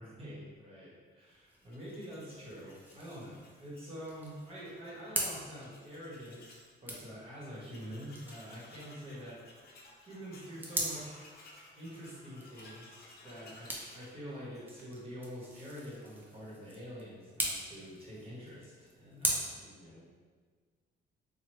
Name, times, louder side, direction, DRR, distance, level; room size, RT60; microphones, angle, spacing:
voice 1, 0.0-9.4 10.0-11.3 11.7-20.0, equal, 30° right, -7 dB, 1.3 m, -46 dB
sound 1, 1.3-19.3, right 1 dB, 10° right, 0.6 m, -43 dB
Tools, 1.6-6.7 7.1-7.2 7.4-15.0, left 2 dB, 50° left, 0.6 m, -58 dB
3.0 x 2.3 x 3.1 m, 1.5 s
cardioid pair, 90°, 20 cm